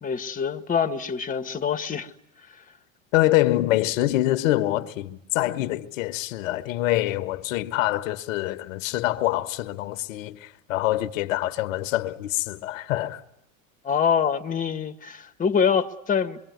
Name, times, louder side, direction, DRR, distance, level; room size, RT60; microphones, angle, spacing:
voice 1, 0.0-2.1 2.5-2.6 13.8-16.4, left 7 dB, 20° left, 1.5 m, -25 dB
voice 2, 3.1-13.2, left 16 dB, 70° left, 1.4 m, -25 dB
26.5 x 24.0 x 9.5 m
hypercardioid pair, 105°, 40 cm